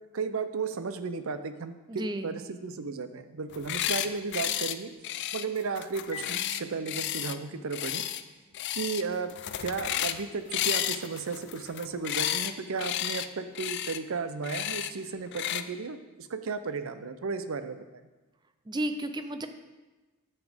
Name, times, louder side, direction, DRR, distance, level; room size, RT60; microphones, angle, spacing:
voice 1, 0.1-4.9 5.3-8.0 8.7-17.8, right 4 dB, 65° right, 10 dB, 0.6 m, -34 dB
voice 2, 1.9-2.3 18.7-19.5, right 1 dB, 20° right, 9 dB, 0.4 m, -32 dB
sound 1, 3.5-4.1 4.3-4.8 5.0-7.4 7.7-8.2 8.5-9.0 9.3-10.2 10.5-12.5 12.8-13.3 13.6-14.0 14.4-14.9 15.3-15.6, left 11 dB, 50° left, 0.3 m, -32 dB
Marimba xylophone, 6.1-8.8, left 5 dB, 20° left, 0.8 m, -49 dB
9.4 x 7.3 x 3.5 m, 1.2 s
head